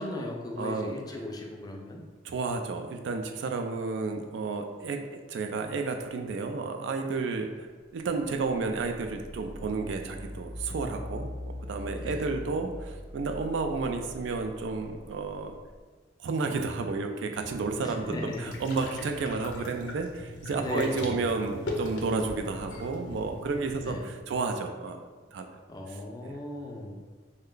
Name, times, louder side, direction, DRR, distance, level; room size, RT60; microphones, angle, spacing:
voice 1, 0.0-2.0 12.0-12.4 17.8-18.5 20.6-21.3 23.7-24.0 25.7-27.0, left 1 dB, 20° left, 1 dB, 0.4 m, -37 dB
voice 2, 0.6-0.9 2.2-7.7 7.9-15.5 16.2-25.0 25.3-25.4 25.9-26.4, right 4 dB, 70° right, 5 dB, 0.3 m, -32 dB
sound 1, 8.2-15.8, left 1 dB, 40° right, 1.1 m, -42 dB
sound 2, 17.3-24.1, left 2 dB, 75° left, 0.6 m, -40 dB
3.2 x 2.2 x 3.7 m, 1.4 s
head